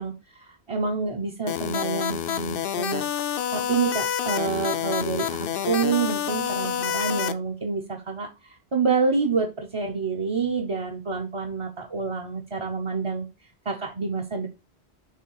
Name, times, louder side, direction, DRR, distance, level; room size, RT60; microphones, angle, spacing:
voice 1, 0.0-3.0 3.5-13.3 13.6-14.5, right 5 dB, 35° right, 0 dB, 0.7 m, -28 dB
sound 1, 1.5-7.3, left 9 dB, 65° left, 0.7 m, -28 dB
6.8 x 3.3 x 4.6 m, 0.28 s
omnidirectional pair, 1.1 m